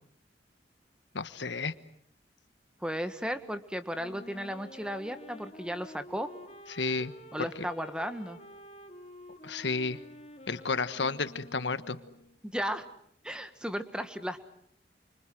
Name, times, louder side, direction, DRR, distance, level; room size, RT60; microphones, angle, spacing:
voice 1, 1.1-1.7 6.7-7.1 7.4-7.5 9.4-10.0 10.5-12.0, left 4 dB, 80° left, 13 dB, 1.3 m, -31 dB
voice 2, 2.8-6.3 7.3-8.4 12.5-12.8 13.2-14.5, equal, 5° right, 9 dB, 1.6 m, -35 dB
Wind instrument woodwind instrument, 3.9-12.4, left 1 dB, 35° left, 2.3 m, -50 dB
29.0 x 25.5 x 7.8 m, 0.68 s
head